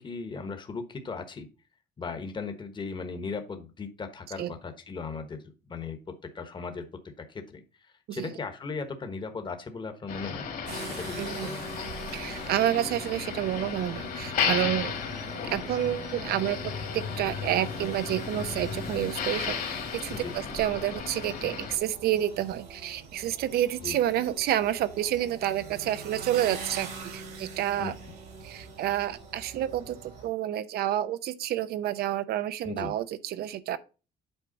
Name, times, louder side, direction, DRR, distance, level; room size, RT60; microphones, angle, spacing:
voice 1, 0.0-1.5 2.0-6.0 6.3-6.9 7.2-7.6 8.1-10.5 10.8-11.6 20.1-20.4 23.8-24.0 27.8-27.9 32.6-32.9, left 4 dB, 30° left, 1.2 m, -37 dB
Motor vehicle (road), 10.1-21.8, left 7 dB, 55° left, 2.0 m, -34 dB
sound 1, 10.7-30.3, right 4 dB, 90° right, 2.8 m, -43 dB
voice 2, 11.2-11.5 12.1-15.0 15.5-16.6 16.9-19.6 19.9-27.9 28.4-33.8, right 12 dB, 65° right, 0.6 m, -29 dB
8.1 x 4.6 x 4.0 m
cardioid pair, 110°, 17 cm